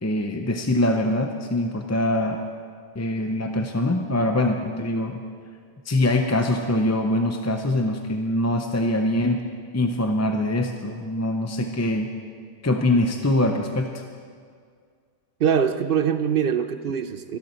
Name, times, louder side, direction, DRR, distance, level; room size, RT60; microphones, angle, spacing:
voice 1, 0.0-2.4 2.9-5.2 5.9-9.4 9.7-12.1 12.6-14.0, left 1 dB, 20° left, 4 dB, 0.5 m, -23 dB
voice 2, 15.4-17.4, right 7 dB, 55° right, 10 dB, 0.7 m, -23 dB
18.5 x 13.5 x 4.4 m, 2.1 s
omnidirectional pair, 1.2 m